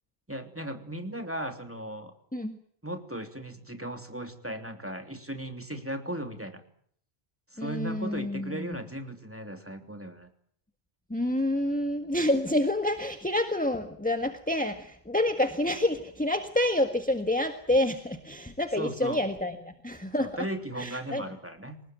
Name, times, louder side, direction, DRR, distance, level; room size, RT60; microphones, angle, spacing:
voice 1, 0.3-2.1 2.8-6.6 7.5-10.3 18.7-19.2 20.2-21.8, right 1 dB, 10° right, 6 dB, 3.1 m, -37 dB
voice 2, 7.6-8.8 11.1-20.3 20.8-21.2, left 1 dB, 10° left, 7 dB, 1.7 m, -28 dB
29.0 x 19.0 x 9.2 m, 0.64 s
omnidirectional pair, 1.0 m